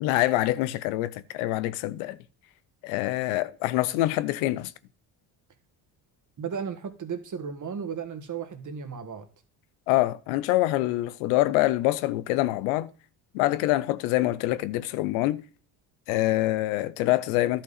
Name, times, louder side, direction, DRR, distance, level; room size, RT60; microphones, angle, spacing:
voice 1, 0.0-2.2 2.8-4.7 9.9-12.9 13.3-15.4 16.1-17.6, left 16 dB, 80° left, 0.8 m, -25 dB
voice 2, 6.4-9.3, right 6 dB, 35° right, 1.7 m, -34 dB
11.5 x 5.7 x 4.0 m
supercardioid pair, 80°, 49 cm